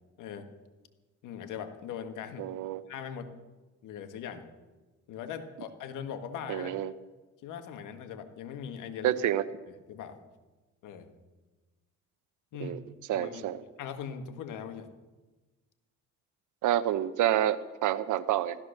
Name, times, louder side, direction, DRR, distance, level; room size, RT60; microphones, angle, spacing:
voice 1, 0.2-0.5 1.2-2.5 2.9-3.3 3.8-4.5 5.1-6.8 7.4-9.2 9.9-10.2 10.8-11.1 12.5-12.8 13.1-13.5 13.8-14.9, left 8 dB, 90° left, 7 dB, 1.7 m, -40 dB
voice 2, 2.4-2.8 6.5-6.9 9.0-9.4 12.6-12.8 13.1-13.6 16.6-18.6, right 12 dB, 80° right, 14 dB, 0.9 m, -28 dB
16.0 x 13.5 x 6.7 m, 1.2 s
cardioid pair, 90°, 30 cm